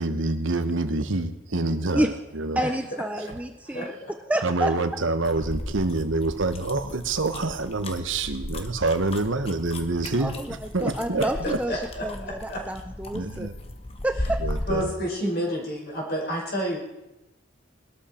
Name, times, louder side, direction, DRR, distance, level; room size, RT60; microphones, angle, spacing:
voice 1, 0.0-2.6 3.2-3.3 3.7-3.8 4.4-11.6 13.1-13.6 14.4-14.9, right 2 dB, 75° right, 9 dB, 1.2 m, -27 dB
voice 2, 2.6-3.9 4.3-4.7 10.2-10.3 10.8-11.7 12.0-13.5 14.0-14.4, right 1 dB, 5° right, 7 dB, 0.4 m, -28 dB
sound 1, 5.2-14.9, left 1 dB, 30° left, 1.2 m, -36 dB
voice 3, 11.7-12.0 12.5-12.6 14.7-16.8, equal, 50° left, -2 dB, 5.2 m, -29 dB
21.0 x 13.0 x 4.4 m, 0.96 s
head